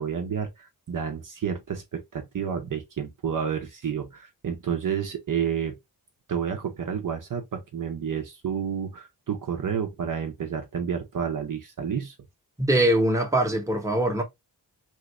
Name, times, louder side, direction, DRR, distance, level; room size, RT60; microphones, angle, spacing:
voice 1, 0.0-5.8 6.3-12.2, right 7 dB, 50° right, 0.7 m, -30 dB
voice 2, 12.6-14.2, right 1 dB, 10° right, 0.9 m, -22 dB
3.0 x 2.4 x 2.9 m
wide cardioid pair, 120°, 39 cm